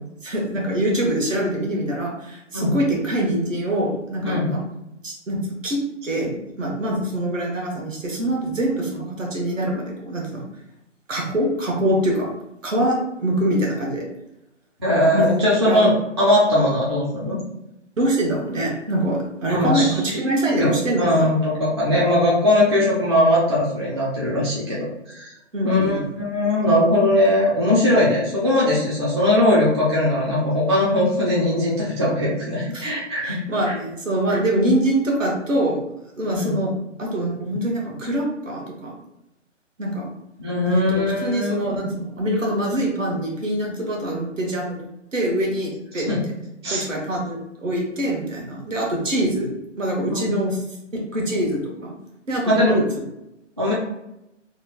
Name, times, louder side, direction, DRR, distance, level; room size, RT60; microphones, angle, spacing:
voice 1, 0.2-4.6 5.0-10.5 11.1-12.3 12.6-14.0 15.1-15.3 15.6-15.9 18.0-21.3 25.5-26.1 32.7-32.9 33.2-35.8 36.2-36.7 37.0-39.0 39.8-40.1 40.6-40.8 41.2-46.1 46.7-50.6 50.9-51.9 52.3-52.8, right 1 dB, 80° right, -1 dB, 1.0 m, -24 dB
voice 2, 4.2-4.5 14.8-17.4 19.5-20.2 20.5-25.3 25.6-33.4 33.7-33.8 34.3-34.4 36.3-36.6 40.4-41.6 46.1-46.2 46.6-46.9 50.1-50.4 52.4-52.8 53.6-53.7, left 1 dB, 25° right, -7 dB, 0.4 m, -20 dB
2.9 x 2.2 x 3.4 m, 0.88 s
figure-of-eight pair, 135°, 37 cm